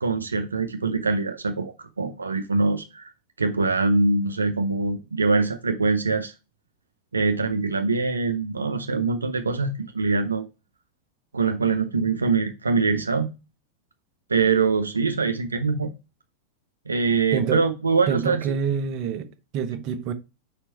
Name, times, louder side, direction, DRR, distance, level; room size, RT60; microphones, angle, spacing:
voice 1, 0.0-3.1 3.4-6.3 7.1-10.4 11.3-13.3 14.3-15.9 16.9-18.5, right 4 dB, 75° right, 0.6 m, -23 dB
voice 2, 17.3-17.6 18.1-19.3 19.5-20.1, right 7 dB, 40° right, 0.7 m, -26 dB
5.0 x 4.5 x 4.3 m
figure-of-eight pair, 90°, 0 cm